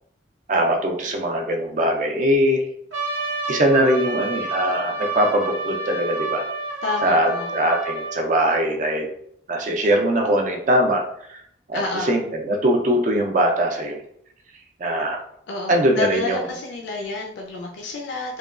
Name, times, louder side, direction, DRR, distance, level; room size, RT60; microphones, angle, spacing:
voice 1, 0.5-2.6 3.5-6.4 7.0-9.1 9.5-11.4 11.7-11.8 12.1-14.0 14.8-15.2 15.7-16.4, right 1 dB, 45° right, 2 dB, 0.4 m, -21 dB
Trumpet, 2.9-8.2, right 2 dB, 80° right, 0.7 m, -29 dB
voice 2, 6.8-7.5 11.7-12.1 15.5-18.4, left 3 dB, 70° left, 0 dB, 0.4 m, -29 dB
3.0 x 2.2 x 2.3 m, 0.69 s
head